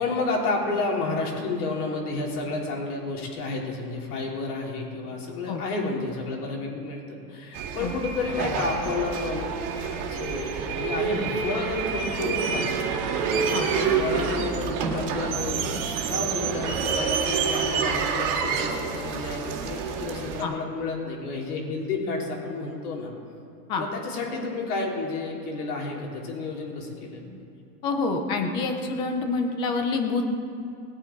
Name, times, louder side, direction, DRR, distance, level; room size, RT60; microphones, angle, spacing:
voice 1, 0.0-15.7 16.1-23.1 23.8-27.3, left 3 dB, 70° left, -1 dB, 3.8 m, -31 dB
sound 1, 7.5-20.4, right 6 dB, 40° right, 2.1 m, -28 dB
sound 2, 11.8-16.9, right 6 dB, 90° right, 1.4 m, -36 dB
voice 2, 27.8-30.2, left 4 dB, 10° left, 5 dB, 0.3 m, -27 dB
20.0 x 9.2 x 4.6 m, 2.8 s
supercardioid pair, 140°, 47 cm